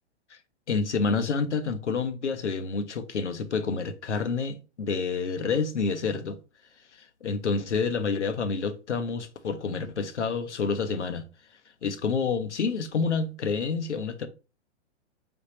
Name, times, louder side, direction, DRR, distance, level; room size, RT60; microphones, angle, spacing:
voice 1, 0.7-6.4 7.0-11.2 11.8-14.3, left 5 dB, 90° left, 0.6 m, -28 dB
3.9 x 3.4 x 2.9 m
figure-of-eight pair, 110°, 34 cm